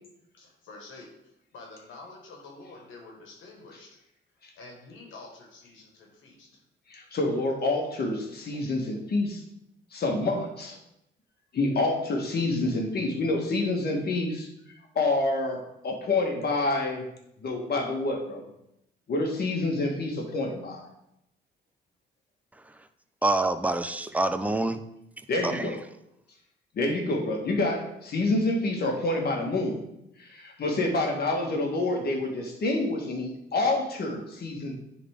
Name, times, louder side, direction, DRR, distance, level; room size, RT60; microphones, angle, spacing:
voice 1, 0.3-4.0 4.6-6.5, left 3 dB, 75° left, 1.8 m, -48 dB
voice 2, 6.9-9.4 9.9-10.8 11.5-14.5 15.0-17.1 17.4-18.4 19.1-20.9 25.3-25.8 26.7-29.8 30.2-34.7, left 2 dB, 55° left, 1.7 m, -27 dB
voice 3, 22.5-22.9 23.2-24.8 25.4-25.8, right 2 dB, 5° right, 0.5 m, -27 dB
9.8 x 3.9 x 3.7 m
cardioid pair, 90°, 20 cm